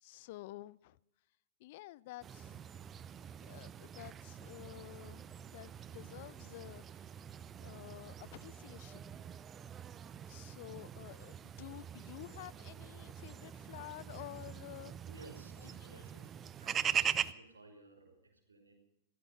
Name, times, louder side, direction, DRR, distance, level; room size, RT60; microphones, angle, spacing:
voice 1, 0.0-1.0 1.6-2.6 3.4-6.8 7.6-9.3 10.3-14.9 15.6-16.0, left 17 dB, 45° left, 0.5 m, -51 dB
sound 1, 2.2-17.3, right 8 dB, 20° right, 0.6 m, -42 dB
voice 2, 15.1-18.7, right 2 dB, 75° right, 5.7 m, -57 dB
16.0 x 15.5 x 5.7 m
figure-of-eight pair, 105°, 0 cm